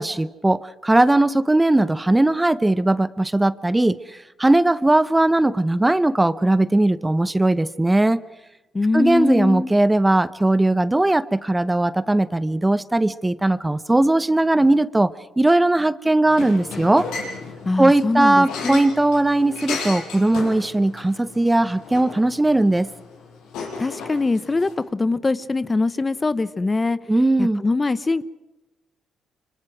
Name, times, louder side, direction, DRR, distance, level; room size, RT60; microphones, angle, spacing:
voice 1, 0.0-8.2 8.9-15.1 15.4-17.1 17.8-22.9 27.1-27.6, right 2 dB, 10° right, 16 dB, 0.8 m, -19 dB
voice 2, 8.7-9.7 17.6-18.9 23.8-27.0 27.4-28.2, left 3 dB, 25° left, 16 dB, 0.8 m, -22 dB
sound 1, 16.3-24.7, left 4 dB, 90° left, 6.3 m, -35 dB
26.0 x 25.0 x 6.0 m, 1.1 s
cardioid pair, 90°, 0 cm